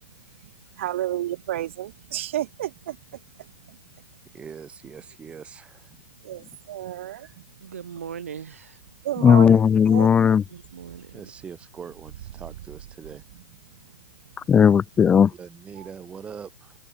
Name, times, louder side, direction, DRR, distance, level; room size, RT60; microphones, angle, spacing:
voice 1, 0.8-3.0 3.7-3.8 6.2-7.3 9.0-10.1 15.8-15.9, right 13 dB, 65° right, 2.8 m, -31 dB
voice 2, 4.3-5.9 7.2-7.3 11.1-13.2 15.4-16.7, right 7 dB, 15° right, 1.0 m, -42 dB
voice 3, 7.6-8.8 10.5-11.3, right 8 dB, 85° right, 1.7 m, -39 dB
voice 4, 9.2-10.4 14.5-15.3, left 7 dB, 15° left, 0.4 m, -16 dB
hypercardioid pair, 135°, 7 cm